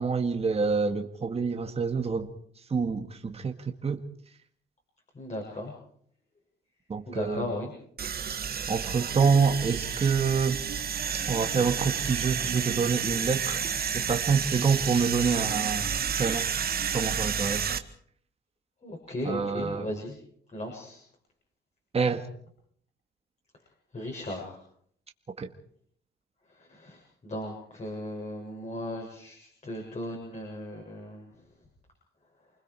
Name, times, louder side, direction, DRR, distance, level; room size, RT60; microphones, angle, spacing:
voice 1, 0.0-2.4 2.7-4.0 6.9-7.4 8.7-10.6 11.3-13.6 13.9-15.9 16.1-16.5 16.9-17.7 19.3-19.8 21.9-22.2 25.4-25.5, right 5 dB, 30° right, 5 dB, 2.0 m, -27 dB
voice 2, 5.1-5.7 7.1-7.7 8.3-8.7 9.4-9.5 18.8-20.2 20.5-21.0 23.9-24.6 26.5-31.5, left 1 dB, 35° left, -1 dB, 7.1 m, -37 dB
sound 1, 8.0-17.8, right 7 dB, 50° right, 1.7 m, -30 dB
29.5 x 21.0 x 4.8 m, 0.62 s
cardioid pair, 90°, 20 cm